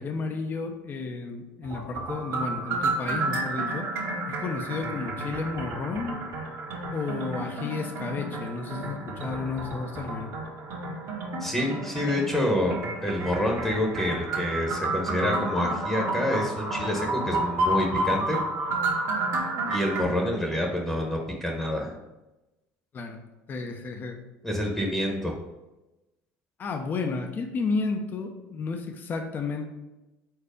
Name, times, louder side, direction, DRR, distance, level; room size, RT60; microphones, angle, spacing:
voice 1, 0.0-3.9 4.3-6.2 6.9-10.3 22.9-23.2 23.5-24.2 26.6-29.7, left 4 dB, 35° left, 4 dB, 0.8 m, -32 dB
sound 1, 1.6-20.0, right 2 dB, 60° right, 1.6 m, -31 dB
voice 2, 11.4-18.4 19.7-21.9 24.4-25.3, left 1 dB, 5° left, 0 dB, 1.1 m, -27 dB
4.6 x 4.2 x 5.0 m, 1.0 s
supercardioid pair, 110°, 6 cm